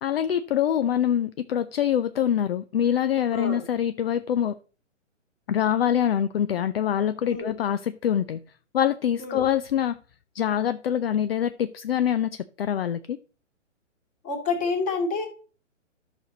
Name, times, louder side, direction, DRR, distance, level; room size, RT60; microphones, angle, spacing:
voice 1, 0.0-4.5 5.5-8.4 8.7-9.9 10.4-12.3 12.6-13.2, left 9 dB, 55° left, 0.5 m, -24 dB
voice 2, 3.3-3.6 7.2-7.6 9.2-9.5 14.2-15.3, left 4 dB, 20° left, 2.3 m, -28 dB
12.0 x 6.1 x 4.0 m
hypercardioid pair, 135°, 37 cm